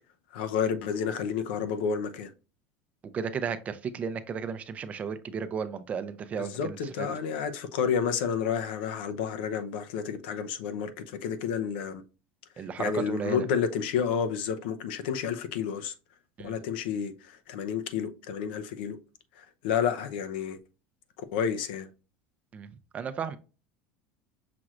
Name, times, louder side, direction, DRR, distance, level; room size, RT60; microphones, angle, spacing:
voice 1, 0.3-2.3 6.4-12.0 12.6-15.9 16.4-19.0 19.4-20.6 21.3-21.9, left 7 dB, 85° left, 0.7 m, -30 dB
voice 2, 3.1-7.1 12.6-13.5 16.4-16.5 22.5-22.7 22.9-23.4, right 6 dB, 25° right, 0.5 m, -34 dB
5.9 x 3.1 x 2.4 m
cardioid pair, 145°, 5 cm